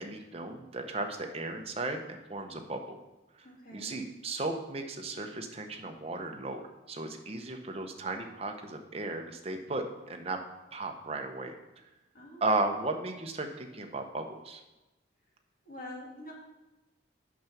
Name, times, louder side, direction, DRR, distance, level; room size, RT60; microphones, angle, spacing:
voice 1, 0.0-3.0 3.4-10.4 10.7-11.5 12.4-14.6, right 2 dB, 30° right, 4 dB, 0.8 m, -35 dB
voice 2, 3.4-4.0 12.1-12.4 15.7-16.3, left 1 dB, 45° left, -3 dB, 2.4 m, -45 dB
6.2 x 5.9 x 7.1 m, 1.0 s
head